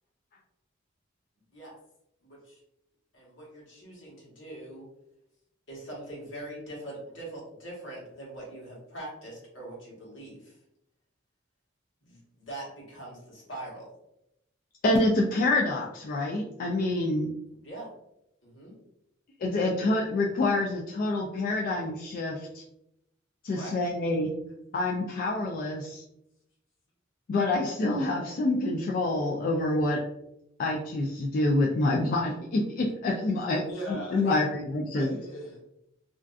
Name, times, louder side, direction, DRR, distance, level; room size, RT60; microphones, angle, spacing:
voice 1, 2.2-2.6 3.1-4.9 5.7-10.6 12.1-13.9 17.0-17.1 17.5-17.9 18.4-18.7 23.5-23.7 33.4-33.6 34.2-34.4, right 1 dB, 70° left, -4 dB, 1.1 m, -42 dB
voice 2, 14.8-17.3 19.4-22.6 23.4-24.3 24.7-26.0 27.3-30.0 30.6-33.6 34.1-35.1, left 2 dB, 45° left, -2 dB, 0.3 m, -27 dB
voice 3, 33.7-34.4 34.9-35.6, equal, 85° left, -2 dB, 0.6 m, -39 dB
2.5 x 2.3 x 2.3 m, 0.82 s
head